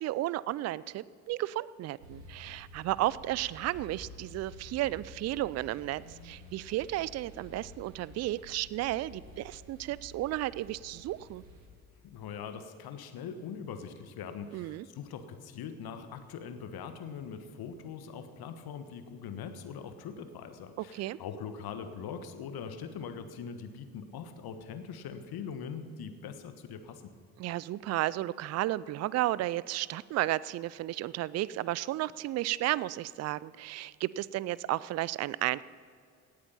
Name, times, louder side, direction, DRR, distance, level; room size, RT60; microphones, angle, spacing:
voice 1, 0.0-11.4 14.5-14.9 20.8-21.2 27.4-35.6, right 15 dB, 35° right, 20 dB, 0.4 m, -33 dB
sound 1, 2.0-11.7, equal, 80° right, 2.1 m, -51 dB
voice 2, 12.0-27.1, left 6 dB, 55° left, 9 dB, 1.4 m, -42 dB
17.5 x 8.5 x 5.7 m, 2.3 s
figure-of-eight pair, 50°, 45 cm